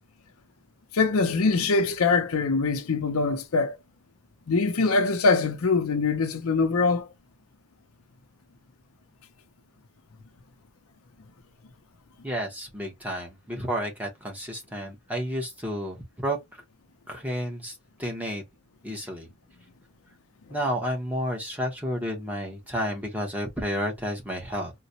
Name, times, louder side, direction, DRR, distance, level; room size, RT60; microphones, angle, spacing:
voice 1, 0.9-3.8 4.5-7.1, left 4 dB, 75° left, 0.6 m, -23 dB
voice 2, 12.2-16.6 17.1-18.4 18.8-19.3 20.5-24.7, equal, 5° right, 0.8 m, -31 dB
3.9 x 2.1 x 2.8 m
head